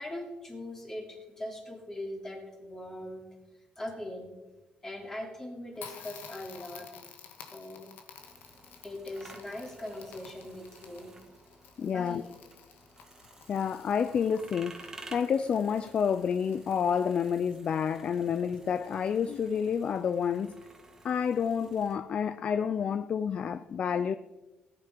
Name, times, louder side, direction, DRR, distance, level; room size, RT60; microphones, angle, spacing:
voice 1, 0.0-3.2 3.8-4.3 4.8-6.9 7.4-7.9 8.8-11.2 11.8-12.2, left 1 dB, 15° left, 3.1 m, -41 dB
Crackle, 5.8-17.3, left 7 dB, 85° left, 2.2 m, -52 dB
sound 1, 8.1-22.0, right 3 dB, 15° right, 1.7 m, -53 dB
voice 2, 11.8-12.2 13.5-20.5 21.0-24.2, left 7 dB, 35° left, 0.4 m, -29 dB
18.5 x 10.5 x 5.2 m
cardioid pair, 180°, 3 cm